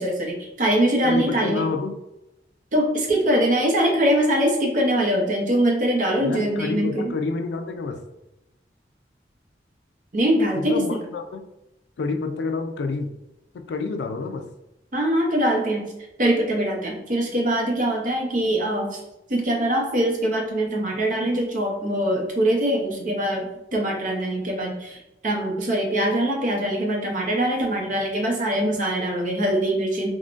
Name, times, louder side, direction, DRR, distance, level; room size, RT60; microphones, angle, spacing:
voice 1, 0.0-1.6 2.7-7.1 10.1-11.0 14.9-15.9 16.2-19.0 19.3-30.1, right 1 dB, 45° right, 0 dB, 0.6 m, -23 dB
voice 2, 1.0-1.9 6.2-8.0 10.6-11.4 12.0-13.1 13.5-14.5, left 4 dB, 80° left, 6 dB, 0.4 m, -28 dB
3.6 x 2.1 x 2.4 m, 0.91 s
head